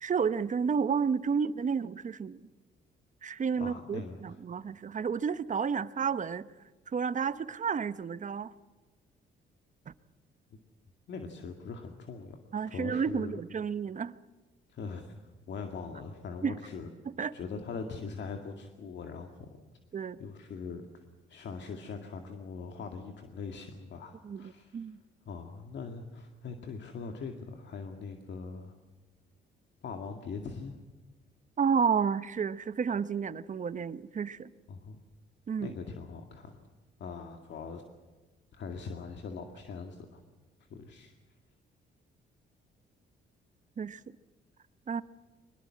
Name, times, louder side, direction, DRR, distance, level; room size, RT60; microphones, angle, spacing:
voice 1, 0.0-2.4 3.2-6.5 6.9-8.5 9.9-10.0 12.5-14.1 16.4-16.6 17.2-17.3 19.9-20.2 24.2-25.0 31.6-34.5 35.5-35.7 43.8-44.0 44.9-45.0, right 6 dB, 40° right, 15 dB, 0.9 m, -31 dB
voice 2, 3.6-4.4 11.1-12.4 12.7-13.4 14.7-15.2 15.5-16.9 17.3-19.5 20.2-21.0 21.3-24.9 25.3-28.7 29.8-30.8 34.7-35.0 35.6-36.6 37.0-37.8 38.5-40.2 40.7-41.1, left 5 dB, 65° left, 4 dB, 2.1 m, -41 dB
23.0 x 20.5 x 7.6 m, 1.2 s
cardioid pair, 90°, 20 cm